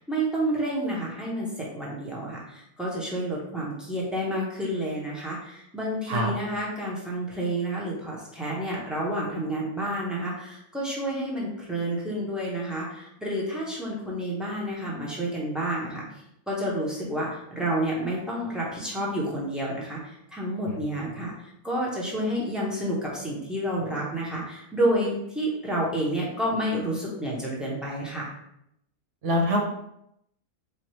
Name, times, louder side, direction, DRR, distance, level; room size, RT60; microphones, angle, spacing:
voice 1, 0.0-16.0 16.5-28.3, right 1 dB, ahead, -5 dB, 0.7 m, -29 dB
voice 2, 29.2-29.6, equal, 60° right, 0 dB, 1.1 m, -24 dB
4.3 x 2.6 x 3.1 m, 0.78 s
omnidirectional pair, 1.6 m